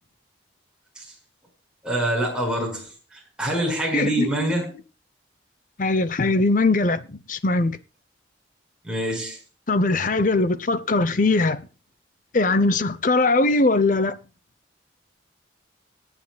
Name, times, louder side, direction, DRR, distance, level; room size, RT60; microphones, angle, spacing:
voice 1, 1.8-4.7 8.8-9.4, right 1 dB, 5° right, 4.8 m, -26 dB
voice 2, 3.9-4.5 5.8-7.8 9.7-11.6 12.3-14.2, left 2 dB, 40° left, 0.7 m, -21 dB
25.0 x 9.1 x 2.3 m
head